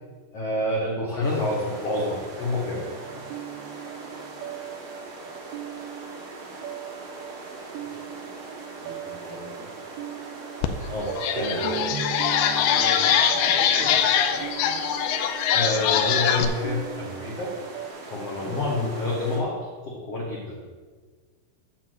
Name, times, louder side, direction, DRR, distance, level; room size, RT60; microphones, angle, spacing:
voice 1, 0.3-2.9 10.9-11.8 15.5-17.5 18.1-20.6, left 2 dB, 65° left, -3 dB, 1.6 m, -28 dB
sound 1, 1.2-19.4, right 3 dB, 65° right, 1.4 m, -41 dB
sound 2, 2.7-17.9, right 9 dB, 85° right, 2.4 m, -39 dB
voice 2, 8.8-9.7 11.3-11.7 12.5-14.9 18.3-18.5, right 1 dB, 40° right, -8 dB, 4.3 m, -39 dB
sound 3, 10.6-10.7 11.1-16.4, left 9 dB, 80° left, 2.5 m, -23 dB
9.5 x 4.5 x 7.7 m, 1.5 s
omnidirectional pair, 4.5 m